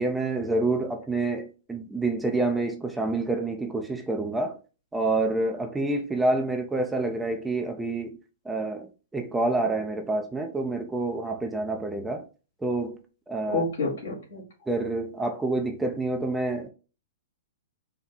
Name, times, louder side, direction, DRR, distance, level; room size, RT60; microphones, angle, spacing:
voice 1, 0.0-4.6 4.9-8.2 8.4-12.2 12.6-13.0 13.3-13.6 14.7-16.7, right 2 dB, 10° right, 0.6 m, -28 dB
voice 2, 13.5-14.4, left 3 dB, 75° left, 2.3 m, -28 dB
4.3 x 2.2 x 4.0 m
hypercardioid pair, 125°, 0 cm